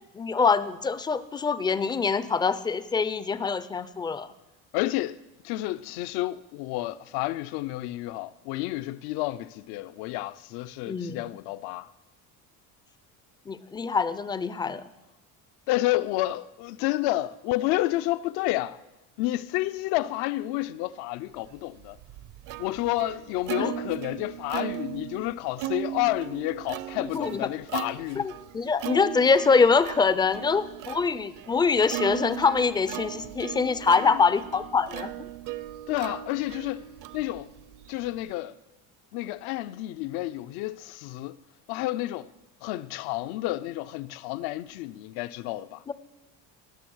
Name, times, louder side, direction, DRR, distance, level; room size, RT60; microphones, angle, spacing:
voice 1, 0.1-4.3 10.9-11.2 13.5-14.8 23.6-23.7 27.0-27.5 28.2-35.1 45.9-46.0, left 5 dB, 10° left, 0.3 m, -24 dB
voice 2, 4.7-5.2 5.4-11.9 15.7-18.8 19.2-22.0 22.6-28.3 34.0-34.2 35.9-36.9 37.1-37.5 37.9-38.5 39.1-41.4 41.7-42.3 42.6-45.8, left 17 dB, 80° left, 0.6 m, -30 dB
Plucked string instrument, 21.6-38.3, right 13 dB, 55° right, 0.6 m, -38 dB
19.0 x 6.4 x 6.2 m
cardioid pair, 145°, 38 cm